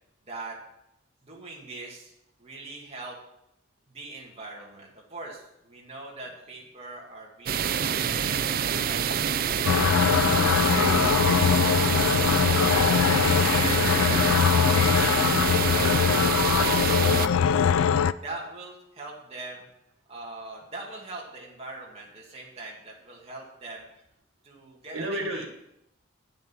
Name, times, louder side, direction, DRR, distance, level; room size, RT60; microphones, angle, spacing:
voice 1, 0.3-0.6 1.2-3.2 3.9-8.4 8.8-9.7 11.6-11.8 12.3-12.7 13.5-13.8 14.3-17.1 18.2-19.7 20.1-23.9 24.4-25.4, right 2 dB, 30° right, -3 dB, 2.1 m, -42 dB
sound 1, 7.5-17.3, right 8 dB, 45° right, 0.4 m, -26 dB
sound 2, 9.7-18.1, left 7 dB, 90° left, 0.4 m, -22 dB
voice 2, 10.7-11.6 24.9-25.4, right 1 dB, 90° right, 4 dB, 1.6 m, -33 dB
9.1 x 7.8 x 6.1 m, 0.82 s
head